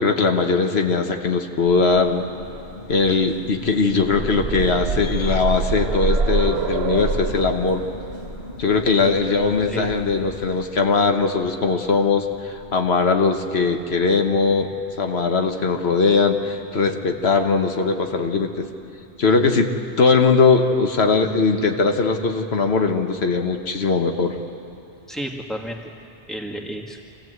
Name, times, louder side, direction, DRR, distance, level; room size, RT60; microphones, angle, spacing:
voice 1, 0.0-2.2 2.9-7.8 8.6-14.7 15.0-18.7 19.2-19.7 20.0-24.4, left 4 dB, 90° left, 5 dB, 1.5 m, -20 dB
sound 1, 1.6-10.7, left 3 dB, 50° left, 1.2 m, -39 dB
sound 2, 3.7-11.5 12.6-12.7 13.1-13.2, right 4 dB, 85° right, 1.2 m, -27 dB
voice 2, 25.1-27.1, equal, ahead, 1 dB, 1.8 m, -32 dB
25.5 x 16.0 x 8.0 m, 2.6 s
omnidirectional pair, 1.0 m